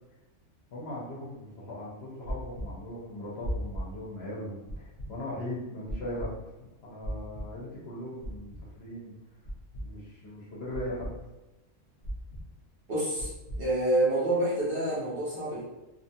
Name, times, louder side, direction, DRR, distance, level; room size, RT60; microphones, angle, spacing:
voice 1, 0.7-6.3 6.8-9.1 9.8-11.1, left 1 dB, 60° left, -5 dB, 0.9 m, -39 dB
sound 1, 2.3-2.7 3.4-3.8 4.7-5.1 5.9-6.3 7.0-7.4 8.2-8.6 9.4-9.8 10.7-11.1 12.0-12.4 13.2-13.6, right 1 dB, 80° left, 0.3 m, -35 dB
voice 2, 12.9-13.3 13.6-15.6, right 1 dB, 55° right, -7 dB, 0.7 m, -27 dB
2.5 x 2.2 x 2.6 m, 1.0 s
omnidirectional pair, 1.4 m